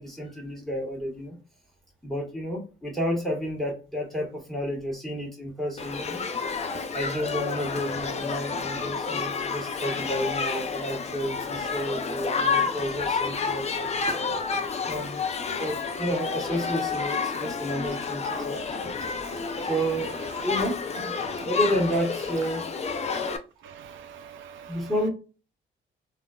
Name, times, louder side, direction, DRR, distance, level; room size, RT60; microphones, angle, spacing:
voice 1, 0.0-1.4 2.0-6.2 6.9-13.9 14.3-15.2 15.6-18.8 19.7-22.7 24.7-25.1, equal, ahead, 1.5 m, -31 dB
Shout / Human group actions, 5.8-23.4, left 5 dB, 35° left, 0.5 m, -30 dB
voice 2, 19.0-19.7 21.2-21.5 23.1-23.3 23.6-24.8, right 7 dB, 75° right, 0.5 m, -45 dB
3.5 x 2.5 x 2.3 m
cardioid pair, 90°, 20 cm